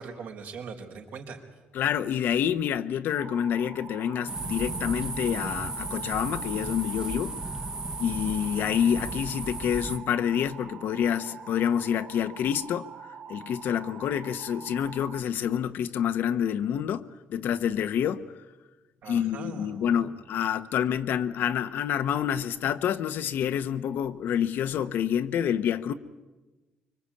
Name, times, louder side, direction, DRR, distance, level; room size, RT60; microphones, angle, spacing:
voice 1, 0.0-1.4 19.0-20.0, right 5 dB, 70° right, 4.2 m, -41 dB
voice 2, 1.7-7.4 8.0-12.9 13.3-18.2 19.1-25.9, left 9 dB, 70° left, 1.0 m, -28 dB
sound 1, 3.2-15.2, right 7 dB, 50° right, 0.7 m, -45 dB
sound 2, 4.3-10.0, right 3 dB, 20° right, 1.2 m, -35 dB
25.0 x 24.0 x 8.5 m
cardioid pair, 110°, 4 cm